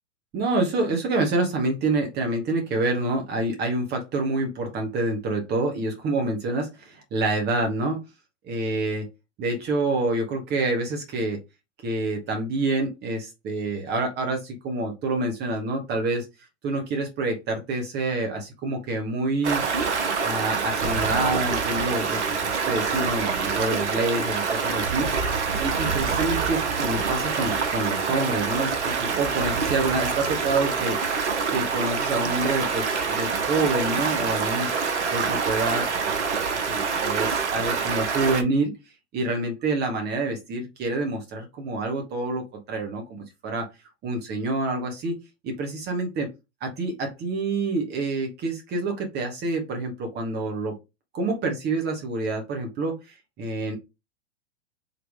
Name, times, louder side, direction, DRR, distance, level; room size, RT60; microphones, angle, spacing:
voice 1, 0.3-8.0 8.4-9.1 9.4-11.4 11.8-16.3 16.6-19.6 20.2-25.1 25.6-31.0 31.5-34.7 35.1-36.2 36.5-38.7 39.1-43.7 44.0-45.2 45.4-46.3 46.6-50.7 51.1-53.0 53.4-53.8, right 2 dB, 25° right, 3 dB, 1.4 m, -27 dB
Stream, 19.4-38.4, right 5 dB, 65° right, 1.1 m, -26 dB
3.9 x 3.1 x 3.7 m, 0.24 s
figure-of-eight pair, 100°, 37 cm